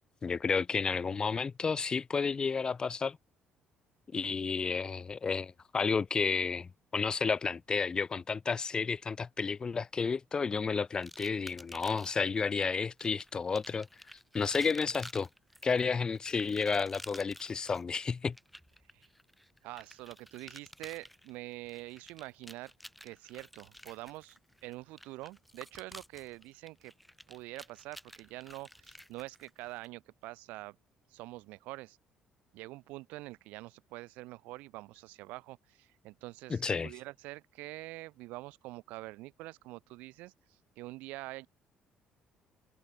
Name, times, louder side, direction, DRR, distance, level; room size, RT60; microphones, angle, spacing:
voice 1, 0.2-3.2 4.1-13.9 14.3-15.3 15.6-18.4 36.5-36.9, left 5 dB, 30° left, 0.7 m, -31 dB
sound 1, 11.0-12.3 13.0-29.9, equal, ahead, 6.1 m, -52 dB
voice 2, 19.6-22.7 23.0-26.9 27.3-30.8 31.1-32.0 32.5-41.5, right 20 dB, 85° right, 2.1 m, -46 dB
cardioid pair, 90°, 3 cm